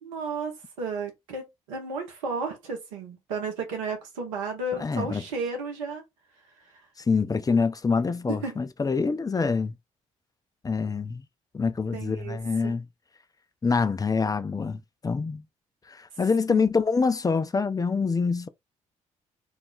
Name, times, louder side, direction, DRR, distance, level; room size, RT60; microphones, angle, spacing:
voice 1, 0.0-6.0 8.4-8.6 11.9-12.7 16.5-16.7, right 3 dB, 90° right, 0.8 m, -33 dB
voice 2, 4.8-5.2 7.1-9.7 10.6-11.2 11.5-12.9 13.6-15.4 15.9-18.5, left 4 dB, 20° left, 0.4 m, -25 dB
2.3 x 2.1 x 3.7 m
hypercardioid pair, 45°, 17 cm